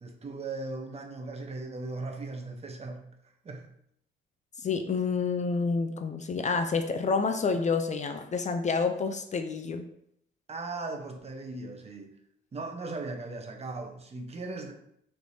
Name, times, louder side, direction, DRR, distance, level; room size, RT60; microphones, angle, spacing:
voice 1, 0.0-3.0 3.4-3.6 10.5-12.2 12.5-14.7, right 3 dB, 30° right, 3 dB, 0.8 m, -38 dB
voice 2, 4.6-9.8, left 4 dB, 35° left, 7 dB, 0.4 m, -28 dB
4.5 x 3.4 x 2.7 m, 0.71 s
cardioid pair, 90°, 20 cm